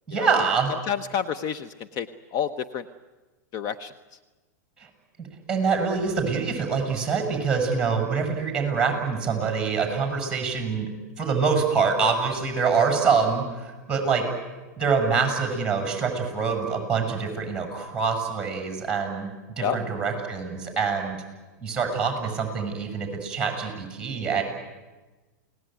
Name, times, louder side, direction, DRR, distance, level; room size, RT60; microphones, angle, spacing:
voice 1, 0.1-0.7 5.5-10.9 11.2-14.2 14.8-19.3 19.6-21.2 21.6-24.4, right 5 dB, 10° right, 5 dB, 8.0 m, -25 dB
voice 2, 0.9-2.9 3.5-4.2 19.6-19.8, left 8 dB, 40° left, 10 dB, 1.1 m, -30 dB
29.5 x 19.0 x 9.5 m, 1.2 s
hypercardioid pair, 120°, 10 cm